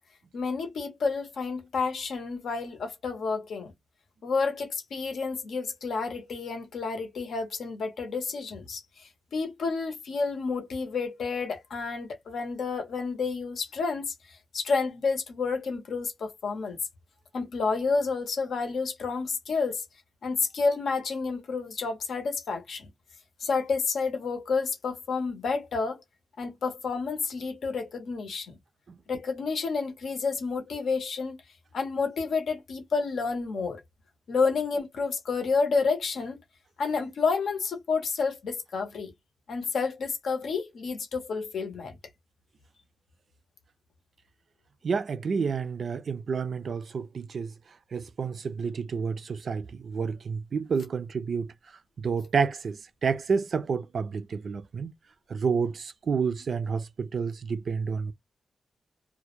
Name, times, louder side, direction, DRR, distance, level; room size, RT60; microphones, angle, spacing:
voice 1, 0.3-3.7 4.2-14.1 14.5-16.8 17.3-19.8 20.2-22.9 23.4-26.0 26.4-28.6 29.1-31.4 31.7-33.8 34.3-36.4 36.8-39.1 39.5-42.0, left 4 dB, 85° left, 0.7 m, -30 dB
voice 2, 44.8-47.5 47.9-51.5 52.0-54.9 55.3-58.1, right 5 dB, 60° right, 0.3 m, -29 dB
2.2 x 2.0 x 2.8 m
wide cardioid pair, 115°, 0 cm